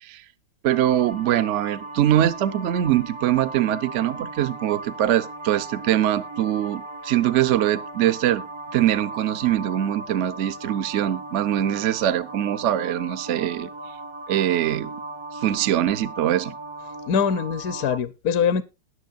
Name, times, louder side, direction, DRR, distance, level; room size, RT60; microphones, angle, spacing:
voice 1, 0.6-8.5 8.7-13.7 14.3-14.9 15.3-16.6, right 12 dB, 90° right, 0.6 m, -23 dB
sound 1, 0.7-18.0, right 2 dB, 35° right, 0.4 m, -37 dB
voice 2, 17.1-18.6, left 7 dB, 60° left, 1.0 m, -23 dB
20.5 x 6.9 x 2.5 m
omnidirectional pair, 2.2 m